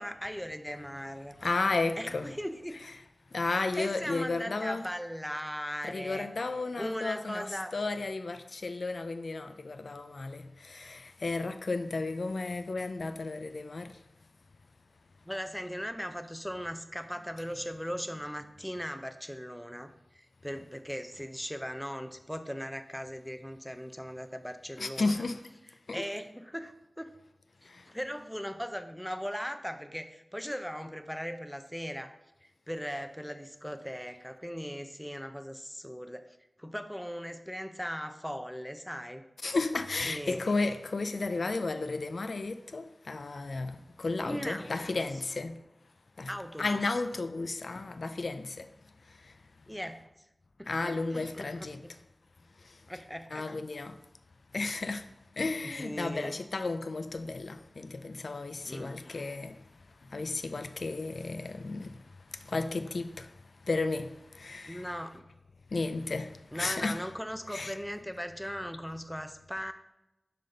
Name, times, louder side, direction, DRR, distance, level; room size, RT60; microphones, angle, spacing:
voice 1, 0.0-1.4 2.0-2.7 3.4-6.3 6.8-7.7 15.3-25.2 25.9-27.1 27.9-32.1 32.4-39.2 40.1-40.4 44.2-44.9 46.3-46.8 49.7-50.0 50.6-51.9 52.9-53.5 55.6-56.4 58.6-59.0 64.7-65.3 66.5-69.7, equal, ahead, 0.5 m, -39 dB
voice 2, 1.4-2.3 3.3-4.9 5.8-13.9 24.8-25.4 25.9-26.1 39.4-45.6 46.2-46.3 46.6-48.7 50.7-51.8 53.3-54.0 54.5-55.0 55.4-59.6 60.1-62.0 62.4-63.3 63.7-64.9 65.7-67.1 67.5-67.8, left 3 dB, 75° left, 0.3 m, -33 dB
5.8 x 5.0 x 3.9 m
wide cardioid pair, 55°, 0 cm